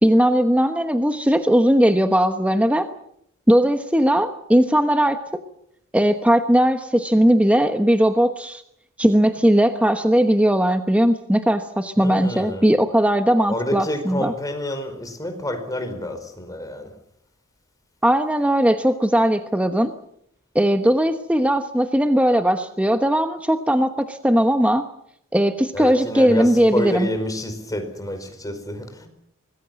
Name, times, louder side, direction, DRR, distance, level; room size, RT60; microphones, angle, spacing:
voice 1, 0.0-2.9 3.5-5.2 5.9-8.6 9.0-14.3 18.0-19.9 20.5-24.8 25.3-27.1, equal, 5° right, 1.1 m, -18 dB
voice 2, 12.0-12.7 13.5-16.9 25.7-29.1, left 1 dB, 15° left, 4.9 m, -28 dB
25.0 x 20.5 x 7.7 m
head